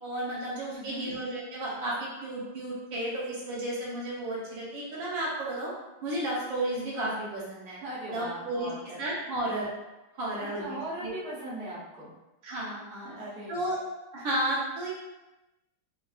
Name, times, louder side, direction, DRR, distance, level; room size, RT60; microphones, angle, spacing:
voice 1, 0.0-5.7 6.0-7.8 8.1-8.7 9.0-9.7 10.2-11.3 12.4-13.1 13.5-13.8 14.1-14.9, right 1 dB, 70° right, -6 dB, 1.7 m, -33 dB
voice 2, 0.7-1.1 7.8-9.0 10.4-12.1 13.0-13.6, right 1 dB, 45° right, -7 dB, 0.9 m, -39 dB
4.1 x 2.5 x 2.4 m, 1.0 s
omnidirectional pair, 2.2 m